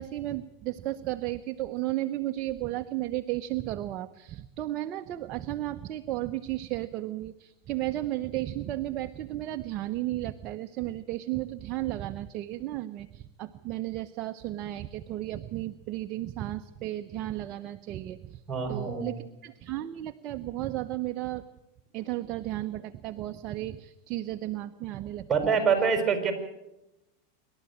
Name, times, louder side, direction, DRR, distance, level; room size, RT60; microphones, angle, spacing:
voice 1, 0.0-18.4 18.7-21.5 21.9-25.7, right 15 dB, 45° right, 8 dB, 0.8 m, -34 dB
voice 2, 18.5-19.2 25.3-26.3, right 6 dB, 20° right, 5 dB, 5.8 m, -25 dB
26.5 x 12.5 x 8.7 m, 0.94 s
hypercardioid pair, 120°, 0 cm